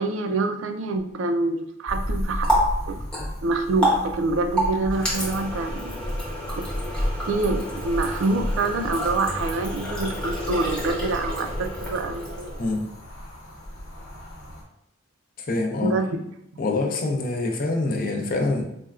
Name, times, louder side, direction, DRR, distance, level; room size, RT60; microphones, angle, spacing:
voice 1, 0.0-2.5 2.9-3.0 3.4-6.0 6.6-6.7 7.3-12.7 15.8-16.2, right 3 dB, 65° right, 6 dB, 0.4 m, -26 dB
sound 1, 1.9-14.6, equal, 80° left, 1.1 m, -36 dB
Water tap faucet, 1.9-12.7, equal, 5° left, 0.8 m, -28 dB
voice 2, 15.4-16.0 16.6-18.6, left 2 dB, 45° left, 2 dB, 0.5 m, -25 dB
4.2 x 2.1 x 2.3 m, 0.78 s
head